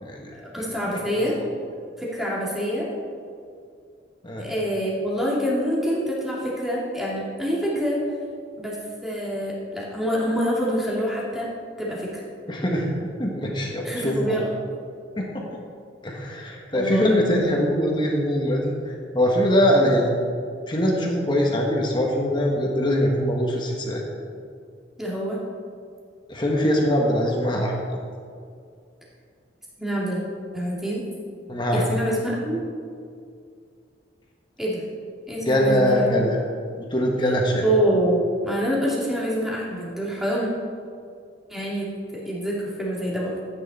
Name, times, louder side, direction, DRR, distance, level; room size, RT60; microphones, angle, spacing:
voice 1, 0.4-1.4 2.0-2.9 4.4-8.0 8.6-11.5 11.8-12.2 13.8-14.5 16.7-17.2 25.0-25.4 29.8-30.2 30.5-31.0 31.7-32.6 34.6-34.8 35.3-36.0 37.6-40.5 41.5-43.3, equal, ahead, -6 dB, 2.3 m, -26 dB
voice 2, 12.5-12.9 13.2-14.4 15.2-15.4 16.0-20.1 20.7-24.0 26.3-27.8 31.5-31.8 35.4-36.4 36.8-37.6, equal, 25° left, -1 dB, 1.4 m, -22 dB
14.0 x 9.4 x 4.2 m, 2.3 s
head